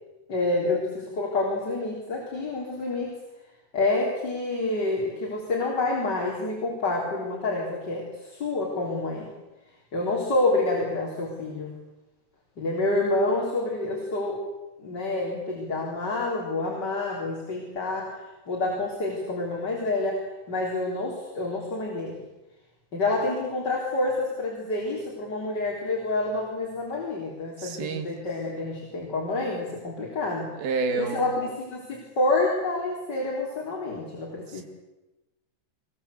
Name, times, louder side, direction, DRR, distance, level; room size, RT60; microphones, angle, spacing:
voice 1, 0.3-3.1 3.7-9.3 9.9-11.7 12.6-14.4 14.8-18.1 18.5-22.2 22.9-34.6, left 2 dB, 25° left, -2 dB, 3.8 m, -28 dB
voice 2, 27.6-28.1 30.6-31.2 34.5-34.6, right 4 dB, 60° right, 7 dB, 3.7 m, -28 dB
23.5 x 21.0 x 8.3 m, 1.0 s
omnidirectional pair, 5.1 m